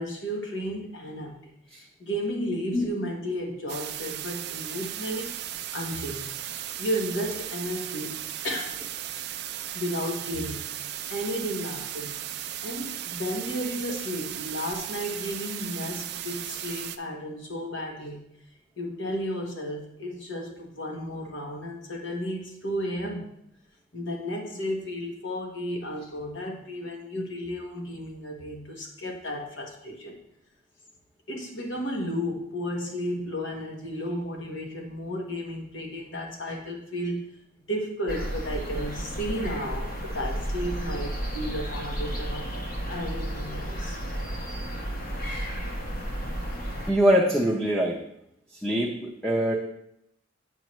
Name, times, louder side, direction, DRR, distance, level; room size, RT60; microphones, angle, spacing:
voice 1, 0.0-5.3 5.7-6.3 6.8-8.8 9.7-10.8 11.1-12.1 12.6-18.2 18.8-23.3 23.9-30.2 31.3-37.3 37.7-42.5 42.9-44.0, equal, 70° left, 1 dB, 1.2 m, -33 dB
sound 1, 3.7-17.0, right 11 dB, 55° right, 0.4 m, -36 dB
sound 2, 38.1-46.9, right 1 dB, 45° left, 1.3 m, -32 dB
voice 2, 46.9-48.0 48.6-49.5, equal, 5° left, -2 dB, 0.6 m, -23 dB
9.0 x 5.4 x 3.1 m, 0.75 s
head